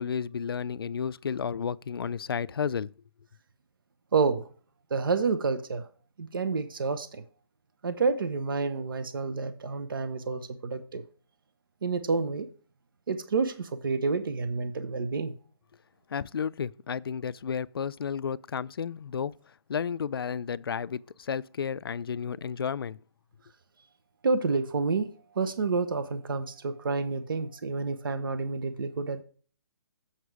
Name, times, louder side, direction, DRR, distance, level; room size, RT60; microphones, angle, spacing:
voice 1, 0.0-2.9 16.1-19.3 19.7-23.0, left 7 dB, 65° left, 0.4 m, -32 dB
voice 2, 4.1-4.5 4.9-5.9 6.2-7.2 7.8-11.0 11.8-12.5 13.1-15.3 24.2-25.1 25.3-29.2, right 4 dB, 55° right, 0.9 m, -29 dB
8.0 x 5.9 x 4.7 m
hypercardioid pair, 180°, 13 cm